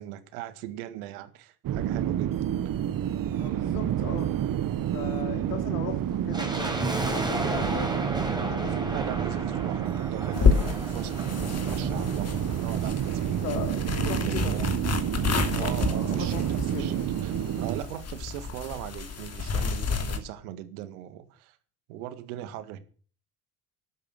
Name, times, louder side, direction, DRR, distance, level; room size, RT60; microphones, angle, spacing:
voice 1, 0.0-2.4 8.9-13.4 14.0-14.7 15.5-16.4 16.7-21.6 21.9-22.8, right 12 dB, 70° right, 1.8 m, -40 dB
sound 1, 1.6-17.8, right 10 dB, 45° right, 1.4 m, -29 dB
voice 2, 3.2-4.3 4.9-8.9 13.4-14.5 15.6-16.9, left 7 dB, 80° left, 3.1 m, -38 dB
sound 2, 6.3-13.6 13.9-14.0 14.6-16.5 16.7-16.8 17.0-17.3 17.8-17.9, right 1 dB, 10° right, 4.6 m, -34 dB
sound 3, 10.3-20.2, left 5 dB, 35° left, 2.7 m, -30 dB
12.0 x 10.5 x 7.6 m
hypercardioid pair, 60°, 46 cm